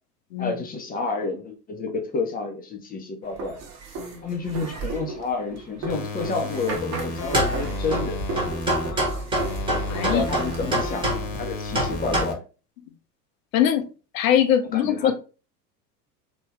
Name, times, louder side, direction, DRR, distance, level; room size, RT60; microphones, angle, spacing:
voice 1, 0.4-3.6 4.2-8.2 9.9-12.4 14.7-15.1, left 3 dB, 20° left, 0.8 m, -30 dB
sound 1, 3.3-10.6, right 3 dB, 35° right, 1.0 m, -35 dB
sound 2, 5.9-8.9 9.3-12.3, left 3 dB, 35° left, 1.2 m, -33 dB
sound 3, 7.2-12.2, right 1 dB, 10° right, 1.3 m, -26 dB
voice 2, 8.7-9.3 9.9-10.2 13.5-13.9 14.1-15.1, left 10 dB, 55° left, 0.7 m, -23 dB
3.3 x 3.1 x 3.0 m
figure-of-eight pair, 85°, 48 cm